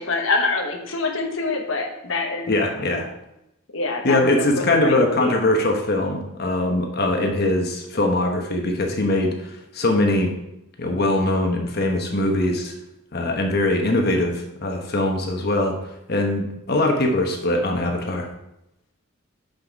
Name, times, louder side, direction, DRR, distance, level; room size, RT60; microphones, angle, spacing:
voice 1, 0.0-2.5 2.8-3.0 3.7-5.3, left 3 dB, 70° left, 3 dB, 1.1 m, -25 dB
voice 2, 2.5-3.1 4.0-10.3 10.8-12.7 13.1-15.8 16.1-18.3, left 1 dB, 50° left, 3 dB, 1.2 m, -22 dB
6.1 x 5.2 x 5.3 m, 0.86 s
head